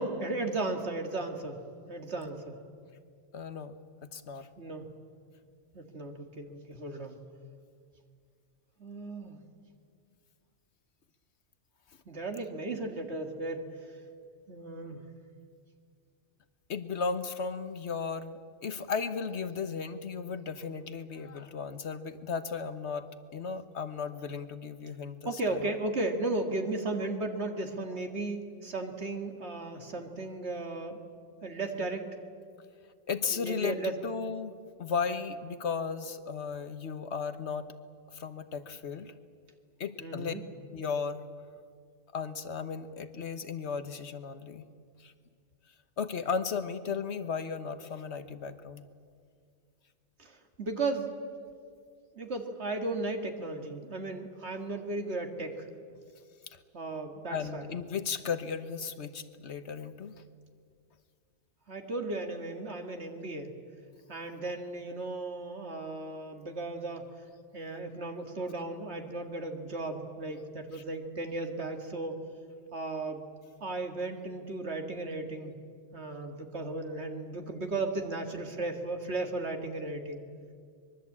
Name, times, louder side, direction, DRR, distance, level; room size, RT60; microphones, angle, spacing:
voice 1, 0.0-1.6 1.9-2.6 4.6-4.9 5.7-7.2 8.8-9.4 12.1-13.7 14.5-15.0 25.3-31.0 31.4-32.1 33.3-34.0 40.0-40.4 50.2-51.1 52.2-55.7 56.7-57.6 61.7-63.5 64.1-67.1 67.5-72.2 72.7-73.2 73.6-75.5 75.9-80.2, right 2 dB, 70° right, 4 dB, 2.2 m, -35 dB
voice 2, 3.3-3.7 4.1-4.5 16.7-23.1 23.3-25.6 33.1-34.5 34.8-37.6 38.1-39.1 39.8-40.3 40.7-41.2 42.1-44.7 45.0-45.1 46.0-48.8 57.3-60.1 70.8-70.9, left 5 dB, 70° left, 11 dB, 1.5 m, -35 dB
24.0 x 22.5 x 8.6 m, 2.2 s
omnidirectional pair, 1.2 m